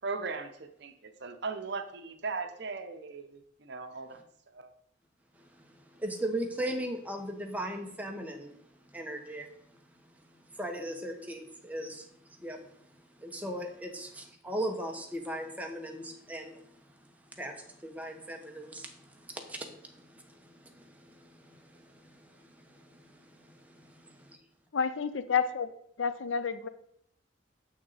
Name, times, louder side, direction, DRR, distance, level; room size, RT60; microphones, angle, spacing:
voice 1, 0.0-4.2 4.5-4.7, right 4 dB, 60° right, 8 dB, 0.7 m, -38 dB
voice 2, 5.4-9.8 10.5-23.5, right 1 dB, 10° right, 3 dB, 1.0 m, -39 dB
voice 3, 24.7-25.7 26.0-26.7, left 6 dB, 80° left, 12 dB, 0.6 m, -29 dB
7.1 x 6.0 x 4.1 m, 0.73 s
head